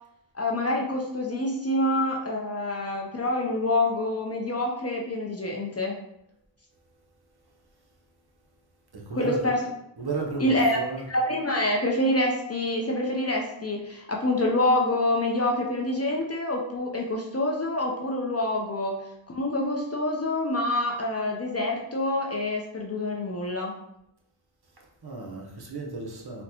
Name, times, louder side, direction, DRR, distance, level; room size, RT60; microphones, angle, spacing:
voice 1, 0.3-6.0 9.1-9.6 10.4-10.8 11.1-19.0 19.3-23.8, left 1 dB, 30° left, 0 dB, 0.5 m, -26 dB
voice 2, 8.9-9.5 10.0-11.1 24.8-26.4, right 3 dB, 50° right, 0 dB, 0.8 m, -34 dB
3.9 x 2.1 x 2.7 m, 0.80 s
wide cardioid pair, 55°, 49 cm